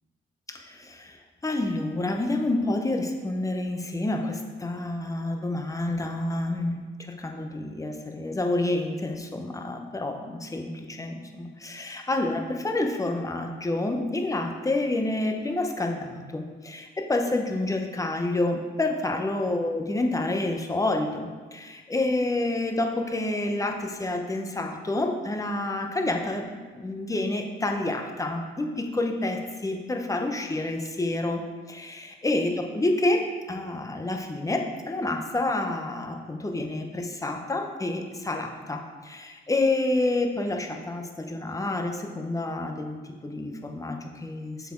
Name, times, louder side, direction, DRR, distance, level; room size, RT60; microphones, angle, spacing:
voice 1, 0.5-1.2 1.4-6.8 7.2-31.4 31.7-43.0 43.2-44.7, left 2 dB, 15° left, 4 dB, 0.8 m, -28 dB
6.7 x 4.3 x 4.5 m, 1.4 s
cardioid pair, 90°, 20 cm